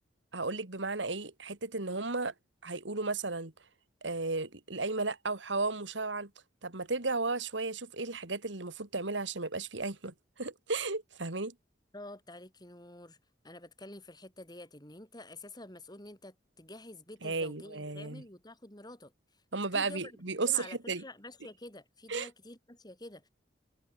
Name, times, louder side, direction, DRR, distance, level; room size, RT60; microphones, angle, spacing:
voice 1, 0.3-2.3 2.6-3.5 4.0-6.3 6.6-11.5 17.2-18.2 19.5-21.0 22.1-22.3, right 3 dB, 80° right, 2.5 m, -34 dB
voice 2, 11.9-13.2 13.4-19.1 19.7-23.3, left 1 dB, 20° left, 6.8 m, -48 dB
head